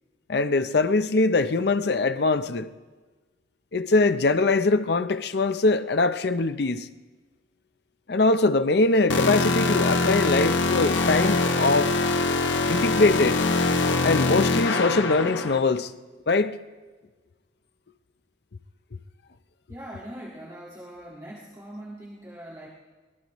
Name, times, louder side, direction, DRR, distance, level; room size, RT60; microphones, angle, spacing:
voice 1, 0.3-2.7 3.7-6.9 8.1-12.0 12.7-13.4 14.0-15.9 16.3-16.6, left 3 dB, 55° left, 0.6 m, -22 dB
sound 1, 9.1-15.6, left 3 dB, 75° left, 0.9 m, -23 dB
voice 2, 19.7-22.7, right 1 dB, 20° right, 1.9 m, -41 dB
24.5 x 19.0 x 3.1 m
head